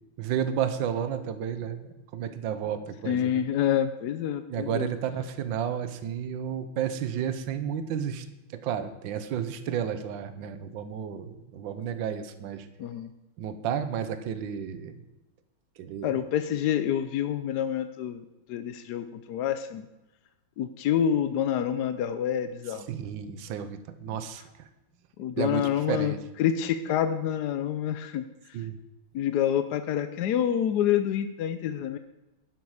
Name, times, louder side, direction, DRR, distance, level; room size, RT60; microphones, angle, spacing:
voice 1, 0.2-3.4 4.5-8.2 8.5-12.7 13.4-14.9 15.8-16.2 22.9-24.7 25.4-26.2 28.5-28.8, right 8 dB, 65° right, 10 dB, 1.6 m, -32 dB
voice 2, 3.0-4.9 12.8-13.1 16.0-19.9 20.6-22.9 25.2-28.2 28.5-28.6 29.1-32.0, left 10 dB, 70° left, 10 dB, 1.0 m, -27 dB
11.5 x 11.0 x 4.9 m, 1.0 s
omnidirectional pair, 2.3 m